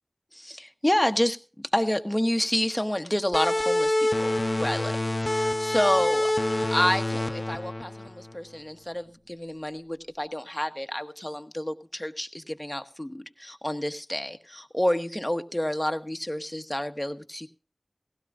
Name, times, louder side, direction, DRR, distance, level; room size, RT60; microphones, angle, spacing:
voice 1, 0.3-1.4 1.7-4.9 5.3-6.3 6.7-17.5, left 1 dB, 15° left, 7 dB, 1.1 m, -29 dB
sound 1, 3.3-8.6, left 1 dB, 40° left, 0.7 m, -27 dB
18.0 x 16.0 x 2.5 m, 0.34 s
wide cardioid pair, 45°, 0 cm